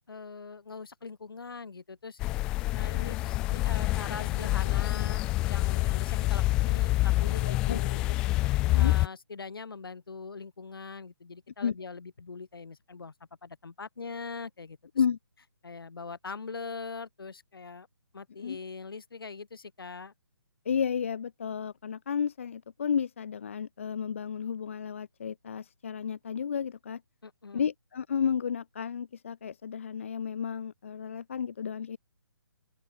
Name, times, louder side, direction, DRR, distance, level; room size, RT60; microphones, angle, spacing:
voice 1, 0.1-2.2 2.7-8.0 8.4-13.1 13.4-14.8 15.6-17.9 18.1-20.1 27.2-27.7, left 4 dB, 60° left, 6.9 m, -42 dB
sound 1, 2.2-9.1, left 18 dB, 5° left, 0.7 m, -27 dB
voice 2, 7.4-7.8 8.6-8.9 11.6-11.7 14.9-15.2 18.4-18.6 20.6-27.0 27.5-32.0, left 7 dB, 30° left, 1.6 m, -32 dB
open air
hypercardioid pair, 175°, 13 cm